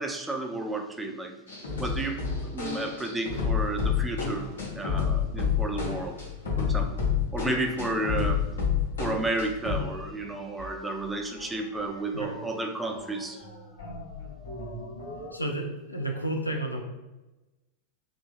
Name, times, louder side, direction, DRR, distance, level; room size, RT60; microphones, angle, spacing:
voice 1, 0.0-1.4 1.8-4.5 4.8-6.2 6.6-7.0 7.3-8.4 9.0-13.4, right 2 dB, 10° right, 4 dB, 0.3 m, -32 dB
sound 1, 1.5-9.9 10.2-10.3 10.6-12.6 12.9-15.3, left 6 dB, 70° left, 0.9 m, -30 dB
voice 2, 15.3-16.8, right 1 dB, 85° left, 2 dB, 0.4 m, -31 dB
3.0 x 2.7 x 2.4 m, 1.0 s
figure-of-eight pair, 90°, 0 cm